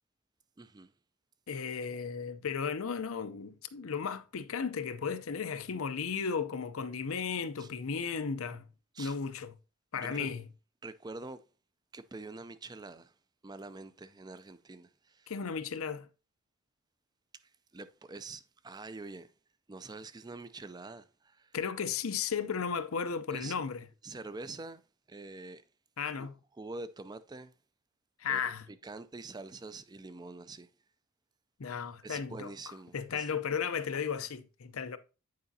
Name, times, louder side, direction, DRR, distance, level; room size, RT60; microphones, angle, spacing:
voice 1, 0.6-0.9 7.6-7.7 8.9-9.2 9.9-10.3 10.8-11.4 11.9-13.1 13.4-15.3 17.7-19.3 19.7-21.6 23.3-23.6 24.0-24.8 25.1-25.6 26.2-26.3 26.6-27.5 28.3-30.7 32.0-33.3, right 3 dB, 20° right, 0.4 m, -45 dB
voice 2, 1.5-8.6 9.0-9.5 9.9-10.4 15.3-16.1 21.5-23.8 26.0-26.3 28.2-28.7 31.6-35.0, left 6 dB, 75° left, 0.6 m, -35 dB
9.4 x 4.9 x 2.7 m
head